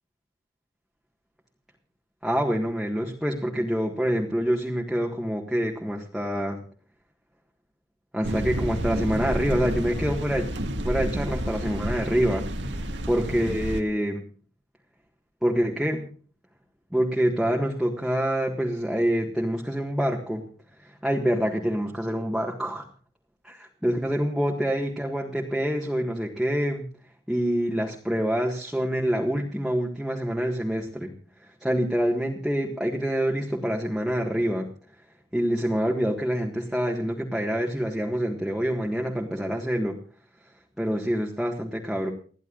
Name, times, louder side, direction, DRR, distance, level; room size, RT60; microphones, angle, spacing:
voice 1, 2.2-6.6 8.1-10.5 10.8-12.5 13.1-14.3 15.4-16.1 16.9-20.4 20.8-22.8 23.4-26.9 27.3-31.1 31.6-34.7 35.3-40.0 40.8-42.1, equal, 5° right, -1 dB, 1.7 m, -26 dB
sound 1, 8.2-13.8, equal, 70° right, 1.9 m, -30 dB
30.0 x 11.0 x 2.5 m, 0.42 s
head